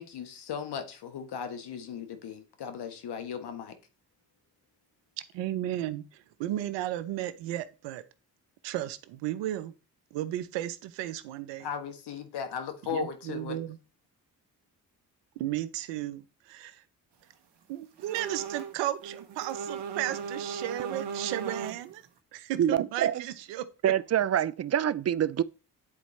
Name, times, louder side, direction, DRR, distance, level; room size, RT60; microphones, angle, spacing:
voice 1, 0.0-3.8 11.6-13.6, left 8 dB, 65° left, 1.4 m, -37 dB
voice 2, 5.3-8.0 8.6-9.7 10.1-11.7 12.9-13.8 15.4-16.8 17.7-22.0 22.3-23.7, right 13 dB, 90° right, 0.7 m, -34 dB
sound 1, 18.0-18.8 19.0-21.9, right 6 dB, 70° right, 1.2 m, -37 dB
voice 3, 22.6-23.1 23.8-25.4, right 10 dB, 40° right, 0.4 m, -26 dB
9.9 x 4.0 x 3.2 m
supercardioid pair, 50°, 42 cm